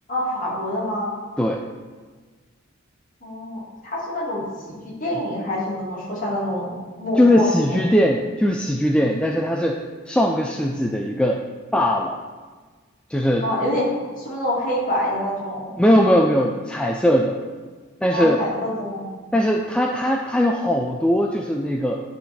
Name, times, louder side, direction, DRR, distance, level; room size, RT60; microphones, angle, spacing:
voice 1, 0.1-1.1 3.2-7.8 13.4-15.8 18.1-19.1, left 1 dB, 40° left, -6 dB, 2.3 m, -26 dB
voice 2, 7.2-9.8 10.1-11.4 11.7-12.2 13.1-13.5 15.8-17.4 18.0-18.4 19.3-22.0, equal, 5° left, 1 dB, 0.3 m, -20 dB
10.0 x 4.0 x 4.2 m, 1.4 s
head